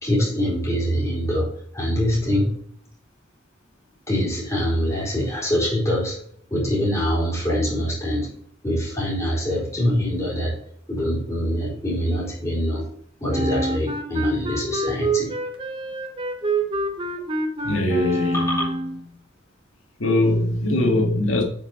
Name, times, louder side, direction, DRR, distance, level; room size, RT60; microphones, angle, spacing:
voice 1, 0.0-2.6 4.1-6.2 6.5-8.3 8.6-10.6 10.9-12.9 13.2-15.3 18.3-18.7, equal, 15° left, 4.1 m, -24 dB
Wind instrument woodwind instrument, 13.3-19.0, right 2 dB, 25° right, 0.9 m, -26 dB
voice 2, 17.6-18.7 20.0-21.4, left 2 dB, 90° left, 1.9 m, -21 dB
8.5 x 5.9 x 4.3 m
head